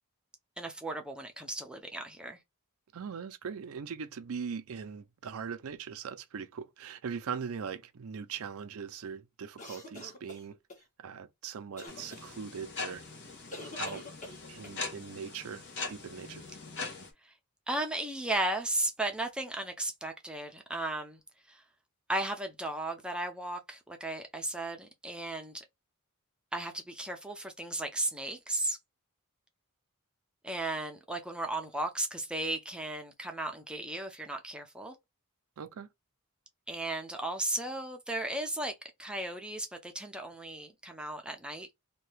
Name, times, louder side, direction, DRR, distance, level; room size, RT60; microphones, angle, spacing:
voice 1, 0.6-2.4 17.2-17.3 17.7-21.2 21.5-21.6 22.1-25.6 26.5-28.8 30.4-35.0 36.7-41.7, right 1 dB, 5° right, 0.5 m, -35 dB
voice 2, 2.9-10.6 11.0-13.0 13.7-14.1 14.5-16.4 35.6-35.9, right 6 dB, 65° right, 0.4 m, -40 dB
sound 1, 9.6-10.8 11.8-12.2 13.5-14.8, left 2 dB, 35° left, 1.2 m, -46 dB
sound 2, 11.9-17.1, left 4 dB, 55° left, 0.9 m, -41 dB
2.7 x 2.2 x 3.2 m
head